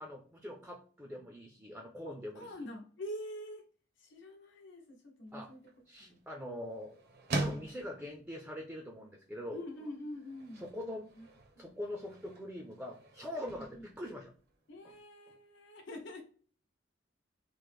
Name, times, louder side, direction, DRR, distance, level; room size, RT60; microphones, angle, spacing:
voice 1, 0.0-2.5 5.3-5.5 5.9-7.0 7.4-9.7 10.6-11.1 11.6-14.3 14.8-14.9, left 1 dB, 5° right, 1 dB, 0.4 m, -43 dB
voice 2, 2.1-3.6 4.0-5.6 6.0-6.2 7.5-7.7 9.5-10.6 11.2-11.3 11.6-11.7 13.5-13.9 14.7-16.2, left 1 dB, 65° left, 1 dB, 0.9 m, -45 dB
sound 1, 5.3-15.0, right 2 dB, 55° right, 0.5 m, -44 dB
3.1 x 2.1 x 3.4 m, 0.43 s
head